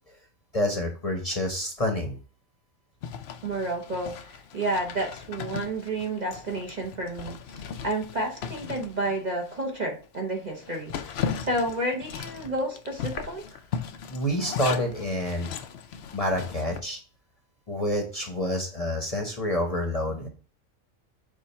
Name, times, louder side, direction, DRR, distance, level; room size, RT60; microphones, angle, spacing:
voice 1, 0.5-2.2 14.1-15.5 16.1-17.0 17.7-20.3, left 1 dB, 30° left, 2 dB, 0.9 m, -28 dB
Zipper (clothing), 3.0-9.6 10.0-10.1 10.5-16.8, left 7 dB, 65° left, 0.7 m, -37 dB
voice 2, 3.4-13.4, right 1 dB, 35° right, 0 dB, 0.9 m, -31 dB
7.1 x 2.5 x 5.4 m, 0.39 s
omnidirectional pair, 1.4 m